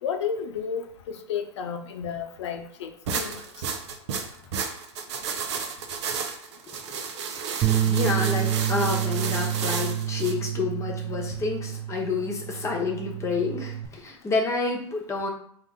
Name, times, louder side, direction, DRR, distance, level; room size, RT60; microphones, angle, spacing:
voice 1, 0.0-3.4, left 7 dB, 75° left, 6 dB, 0.6 m, -32 dB
sound 1, 3.1-10.3, right 6 dB, 70° right, 0.6 m, -32 dB
voice 2, 6.7-7.0 7.8-15.3, left 4 dB, 20° left, 0 dB, 1.0 m, -29 dB
Bass guitar, 7.6-13.9, right 10 dB, 30° right, 0.4 m, -28 dB
3.7 x 2.5 x 3.6 m, 0.62 s
hypercardioid pair, 110°, 15 cm